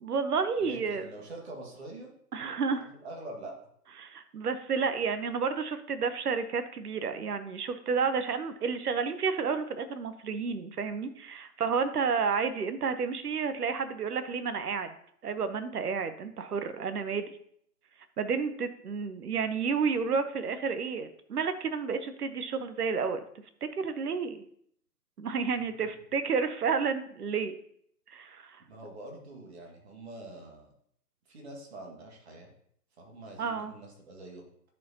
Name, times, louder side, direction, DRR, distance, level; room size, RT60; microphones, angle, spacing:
voice 1, 0.0-1.0 2.3-2.9 4.0-14.9 15.2-17.4 18.2-23.2 23.7-24.4 25.2-27.5 28.1-28.6 33.4-33.7, right 5 dB, 70° right, 11 dB, 0.9 m, -31 dB
voice 2, 0.6-2.1 3.0-3.6 25.8-25.9 28.7-30.7 31.3-32.5 33.0-34.4, right 2 dB, 40° right, 1 dB, 1.8 m, -45 dB
10.5 x 4.4 x 2.8 m, 0.67 s
figure-of-eight pair, 145°, 48 cm